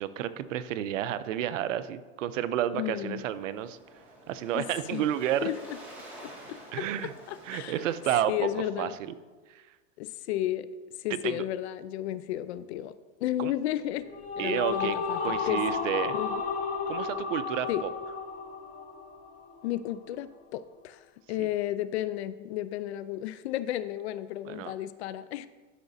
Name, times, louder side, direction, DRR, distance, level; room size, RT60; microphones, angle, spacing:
voice 1, 0.0-3.8 4.3-5.5 6.7-7.1 7.5-8.5 8.8-9.1 9.5-9.6 11.2-11.4 13.4-13.5 14.4-16.2 16.9-17.9 21.4-21.5 24.5-24.7, right 11 dB, 85° right, 13 dB, 0.7 m, -31 dB
voice 2, 2.7-3.2 4.5-5.0 5.4-5.8 6.2-7.8 8.3-8.9 10.0-10.7 11.0-13.0 13.2-14.1 14.4-15.6 16.1-16.4 17.7-17.8 19.6-25.5, left 13 dB, 60° left, 15 dB, 0.5 m, -33 dB
Waves surf, 3.0-8.6, right 1 dB, 5° right, 2.0 m, -49 dB
sound 1, 13.9-19.4, left 5 dB, 20° left, 0.7 m, -32 dB
12.5 x 5.9 x 2.7 m, 1.3 s
supercardioid pair, 150°, 37 cm